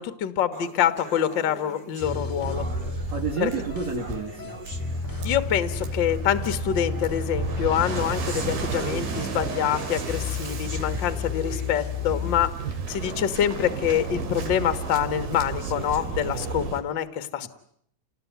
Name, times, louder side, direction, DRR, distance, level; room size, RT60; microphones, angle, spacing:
voice 1, 0.0-2.7 3.4-3.5 5.2-12.5 12.9-17.5, left 10 dB, 50° left, 11 dB, 1.5 m, -26 dB
sound 1, 0.5-5.7 6.5-6.6 7.4-12.7 13.1-13.2 13.7-13.8 14.5-14.6 15.4-16.5, right 2 dB, 25° right, 1.2 m, -43 dB
sound 2, 2.0-12.5, left 5 dB, 10° left, 1.5 m, -33 dB
Waves surf, 2.0-16.8, right 5 dB, 85° right, 4.2 m, -33 dB
voice 2, 3.1-4.6 17.4-17.5, right 4 dB, 55° right, 0 dB, 3.1 m, -30 dB
29.0 x 19.0 x 9.3 m, 0.71 s
omnidirectional pair, 3.9 m